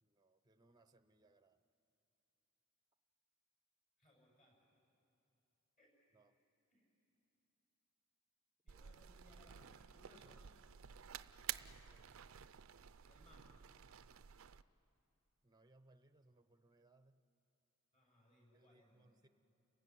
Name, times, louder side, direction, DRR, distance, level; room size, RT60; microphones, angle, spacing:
voice 1, 0.0-1.6 6.1-6.4 11.9-12.2 15.4-17.2 18.5-19.3, right 2 dB, 20° right, 10 dB, 0.7 m, -70 dB
voice 2, 4.0-4.6 5.8-5.9 6.7-6.9 8.6-10.5 13.1-13.6 17.9-19.1, left 1 dB, 35° left, -2 dB, 7.1 m, -68 dB
sound 1, 8.7-14.6, right 10 dB, 65° right, 0.5 m, -51 dB
30.0 x 16.0 x 9.3 m, 2.8 s
head